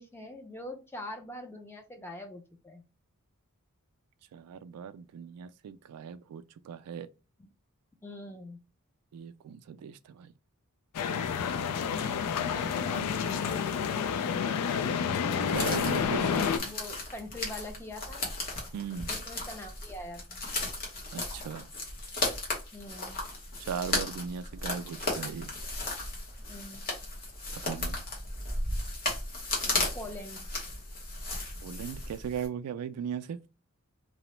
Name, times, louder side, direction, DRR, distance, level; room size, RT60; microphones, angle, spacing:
voice 1, 0.0-2.8 7.4-7.5 8.0-8.6 12.4-14.1 16.1-18.3 19.1-20.4 22.7-23.2 26.4-26.8 29.9-30.5, left 1 dB, 10° left, 0.5 m, -43 dB
voice 2, 4.3-7.1 9.1-10.3 15.5-16.4 18.7-19.1 21.1-21.7 23.6-25.6 27.5-28.0 31.6-33.4, right 7 dB, 85° right, 0.3 m, -38 dB
sound 1, 10.9-16.6, left 7 dB, 90° left, 0.4 m, -29 dB
sound 2, 15.5-32.5, left 2 dB, 40° left, 0.9 m, -35 dB
2.8 x 2.0 x 3.0 m
head